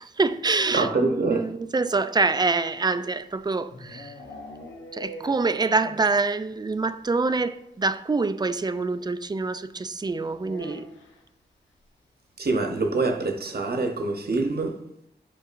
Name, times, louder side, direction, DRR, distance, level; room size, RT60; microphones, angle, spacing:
voice 1, 0.0-4.1 4.9-10.9, right 3 dB, 20° right, 0.4 m, -26 dB
voice 2, 0.7-1.5 12.4-14.8, right 3 dB, 55° right, 0.9 m, -25 dB
sound 1, 3.1-6.2 6.5-6.6 6.9-7.0 7.2-7.4 8.6-8.7 10.4-11.3, left 1 dB, 90° left, 0.9 m, -42 dB
8.3 x 5.4 x 2.5 m
cardioid pair, 60°, 19 cm